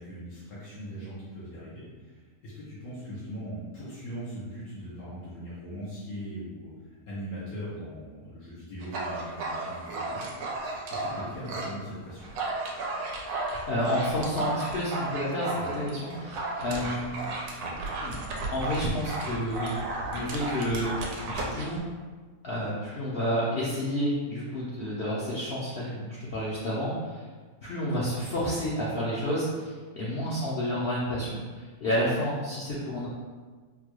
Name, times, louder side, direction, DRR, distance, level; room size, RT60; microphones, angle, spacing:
voice 1, 0.0-6.7 7.1-10.3 10.9-12.3 15.5-15.7 16.8-17.0, equal, 85° left, -10 dB, 1.3 m, -40 dB
Dog, 8.8-11.8 12.1-21.8, right 2 dB, 90° right, 1.1 m, -34 dB
voice 2, 13.7-17.2 18.0-18.2 18.5-19.8 20.1-20.9 21.2-21.8 22.4-27.2 27.6-33.1, equal, 55° left, -8 dB, 0.7 m, -30 dB
3.6 x 2.2 x 2.9 m, 1.4 s
omnidirectional pair, 1.5 m